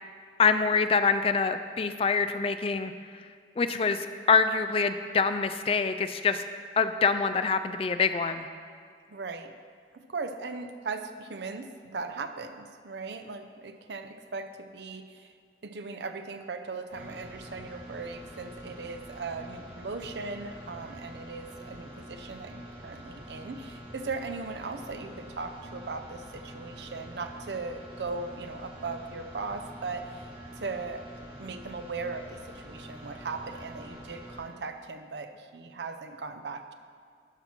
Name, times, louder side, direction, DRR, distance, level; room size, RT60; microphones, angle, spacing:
voice 1, 0.4-2.9 3.6-6.4 6.8-8.5, left 5 dB, 30° left, 10 dB, 0.4 m, -25 dB
voice 2, 9.1-9.5 9.9-15.3 15.6-30.3 30.6-36.7, right 4 dB, 75° right, 8 dB, 0.6 m, -38 dB
sound 1, 16.9-34.4, equal, 30° right, 1.5 m, -46 dB
12.0 x 4.3 x 6.0 m, 2.1 s
head